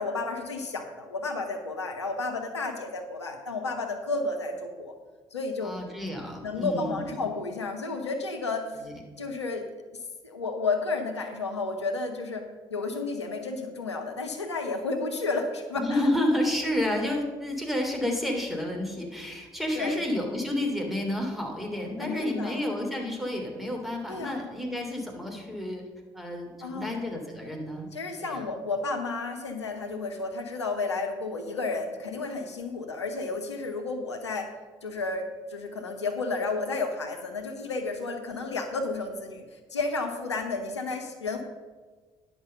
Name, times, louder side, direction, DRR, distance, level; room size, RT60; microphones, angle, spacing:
voice 1, 0.0-4.9 5.3-5.8 6.4-8.8 9.2-9.7 9.9-16.0 19.7-20.0 22.0-22.7 24.1-24.5 26.6-27.0 27.9-34.5 34.8-41.4, left 3 dB, 90° left, 4 dB, 0.8 m, -32 dB
voice 2, 5.6-7.1 8.8-8.9 15.8-25.8 26.1-27.9 28.2-28.5, left 1 dB, ahead, 1 dB, 3.0 m, -30 dB
10.5 x 5.9 x 6.7 m, 1.4 s
figure-of-eight pair, 50°, 14 cm